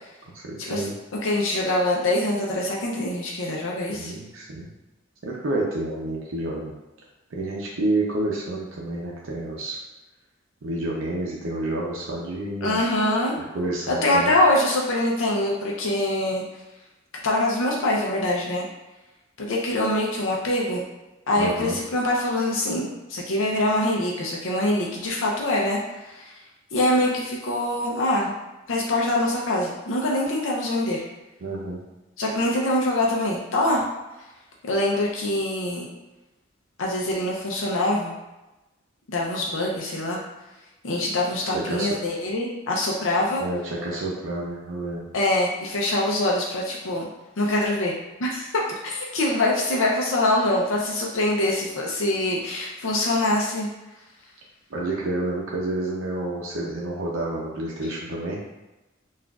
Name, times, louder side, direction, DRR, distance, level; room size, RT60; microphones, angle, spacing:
voice 1, 0.3-0.9 3.9-4.7 5.2-6.7 7.3-9.8 10.6-12.8 13.5-14.3 21.4-21.7 31.4-31.8 41.5-42.0 43.4-45.0 54.7-58.4, right 2 dB, 70° right, -3 dB, 0.6 m, -29 dB
voice 2, 1.2-4.1 12.6-13.3 13.9-16.4 17.2-18.7 19.4-20.8 21.3-26.4 26.7-28.3 28.7-31.0 32.2-33.8 34.7-35.9 36.8-38.1 39.1-40.2 40.8-43.4 45.1-47.1 47.4-53.7, left 1 dB, 75° left, -2 dB, 0.6 m, -24 dB
5.9 x 2.4 x 2.3 m, 1.0 s
head